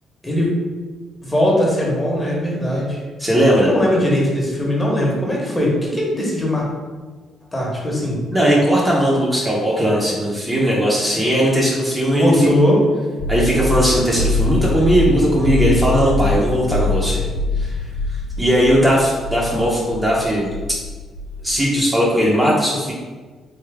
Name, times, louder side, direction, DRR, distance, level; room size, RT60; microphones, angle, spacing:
voice 1, 1.2-3.0 3.6-6.6 7.5-8.2 12.2-12.8, left 1 dB, 20° left, -3 dB, 1.1 m, -19 dB
voice 2, 3.2-3.7 8.3-12.5 13.3-17.3 17.6-17.8 18.4-20.5 21.4-22.9, equal, 15° right, -5 dB, 0.8 m, -18 dB
sound 1, 13.2-21.5, left 2 dB, 50° left, 1.1 m, -23 dB
3.4 x 2.7 x 3.4 m, 1.4 s
cardioid pair, 90°, 0 cm